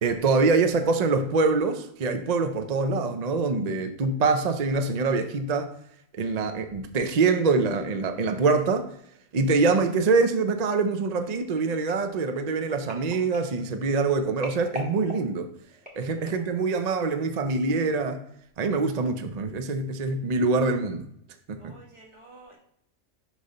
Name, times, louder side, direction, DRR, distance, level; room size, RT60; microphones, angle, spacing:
voice 1, 0.0-5.7 6.1-8.9 9.3-15.5 16.0-18.2 18.6-21.1 21.5-21.7, right 4 dB, 45° right, 0.6 m, -24 dB
sound 1, 11.6-16.6 17.2-17.4 17.7-17.8, left 2 dB, 5° right, 1.7 m, -43 dB
voice 2, 16.1-17.3 21.6-22.6, right 2 dB, 25° right, 1.5 m, -53 dB
6.6 x 3.1 x 5.4 m
omnidirectional pair, 1.3 m